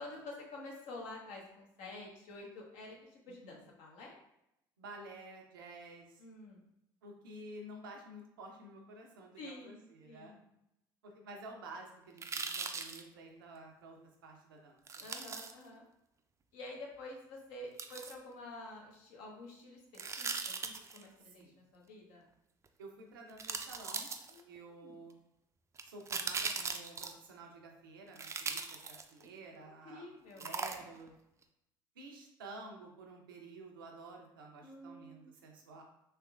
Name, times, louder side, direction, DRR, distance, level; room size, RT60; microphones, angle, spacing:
voice 1, 0.0-4.1 6.2-6.6 9.4-10.4 15.0-15.8 16.5-20.3 20.6-22.2 24.3-25.0 29.6-30.5 34.6-35.3, left 2 dB, 70° left, -1 dB, 0.8 m, -49 dB
voice 2, 3.3-3.6 4.8-6.2 7.0-10.3 11.0-15.1 21.2-21.6 22.8-24.1 24.5-25.1 25.8-31.1 32.0-35.8, right 2 dB, 90° right, 1 dB, 0.5 m, -51 dB
sound 1, 12.2-13.0 14.9-15.5 17.8-18.1 19.9-21.0 22.7-22.8 23.4-24.6 25.8-27.3 28.2-29.3 30.4-31.1 31.4-31.5, right 5 dB, 25° right, 0.4 m, -39 dB
3.3 x 2.9 x 2.3 m, 0.83 s
hypercardioid pair, 65°, 11 cm